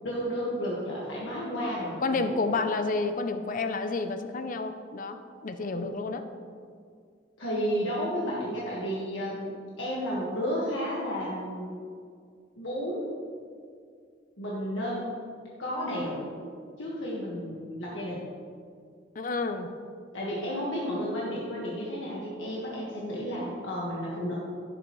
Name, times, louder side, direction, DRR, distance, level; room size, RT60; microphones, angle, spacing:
voice 1, 0.0-2.5 5.7-5.9 7.4-11.7 12.6-13.1 14.4-15.1 15.6-16.3 16.8-18.3 20.1-24.3, equal, 85° left, -6 dB, 1.6 m, -32 dB
voice 2, 2.0-5.2 5.4-6.2 19.2-19.7, left 3 dB, 45° left, 8 dB, 0.5 m, -30 dB
11.5 x 9.1 x 3.1 m, 2.2 s
head